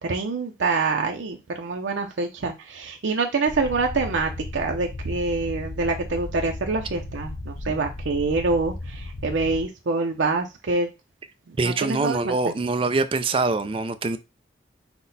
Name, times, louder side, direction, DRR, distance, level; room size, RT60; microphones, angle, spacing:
voice 1, 0.0-10.9 11.5-12.4, right 3 dB, 90° right, 0.5 m, -26 dB
sound 1, 3.5-9.6, left 2 dB, 65° left, 0.6 m, -35 dB
voice 2, 11.6-14.2, right 3 dB, 30° right, 0.3 m, -24 dB
5.9 x 2.1 x 4.0 m
head